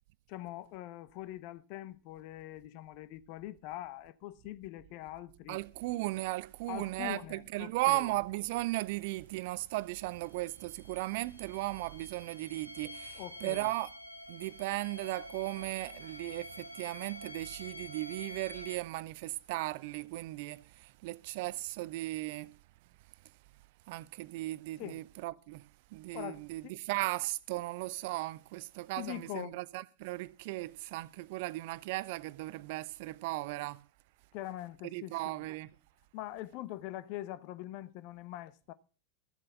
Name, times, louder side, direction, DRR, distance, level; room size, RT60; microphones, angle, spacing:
voice 1, 0.3-5.6 6.7-8.1 13.1-13.7 24.8-25.0 26.1-26.8 29.0-29.6 34.3-35.4 36.1-38.7, left 15 dB, 45° left, 0.9 m, -43 dB
voice 2, 5.5-13.9 14.3-22.6 23.9-33.8 34.9-35.7, right 19 dB, 50° right, 0.6 m, -36 dB
sound 1, 8.9-9.0 9.2-9.3 9.7-18.8, left 1 dB, 90° left, 1.4 m, -48 dB
14.0 x 7.6 x 7.3 m
figure-of-eight pair, 90°, 0 cm